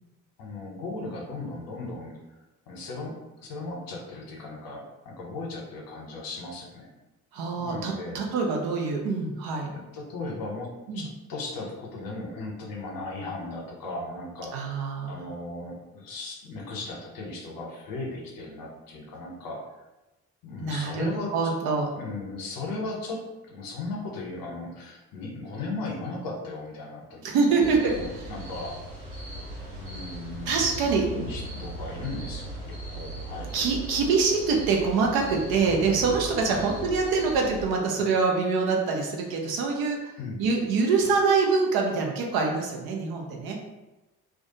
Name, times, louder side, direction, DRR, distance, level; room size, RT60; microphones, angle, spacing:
voice 1, 0.4-2.1 2.7-3.1 3.4-6.9 7.6-8.2 9.7-10.7 10.9-19.7 20.4-21.5 22.0-27.2 27.6-28.8 29.8-30.7 31.1-32.6 32.9-33.6 36.5-36.7 40.2-40.6, left 2 dB, 55° left, -1 dB, 0.8 m, -37 dB
voice 2, 7.3-9.7 10.9-11.0 14.5-15.2 20.6-21.9 27.2-28.2 30.5-31.1 33.5-40.1 40.4-43.6, right 4 dB, 60° right, 1 dB, 0.6 m, -25 dB
sound 1, 27.6-37.7, right 1 dB, 90° right, 1.0 m, -38 dB
2.3 x 2.2 x 2.8 m, 1.0 s
figure-of-eight pair, 40°, 42 cm